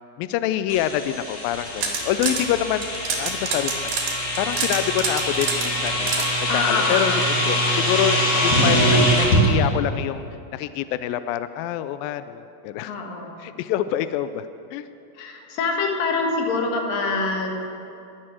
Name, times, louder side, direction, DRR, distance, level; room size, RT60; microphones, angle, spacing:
voice 1, 0.2-3.7 4.4-6.3 6.5-10.2 10.5-12.9 13.4-14.9, left 11 dB, 85° left, 12 dB, 2.0 m, -26 dB
sound 1, 0.7-9.5, equal, 40° left, 3.1 m, -23 dB
sound 2, 1.5-2.4 2.8-6.3, right 5 dB, 70° right, 3.6 m, -27 dB
voice 2, 6.5-7.2 12.9-13.5 15.2-17.6, left 3 dB, 65° left, 2 dB, 3.1 m, -25 dB
21.5 x 8.8 x 6.3 m, 2.6 s
omnidirectional pair, 4.6 m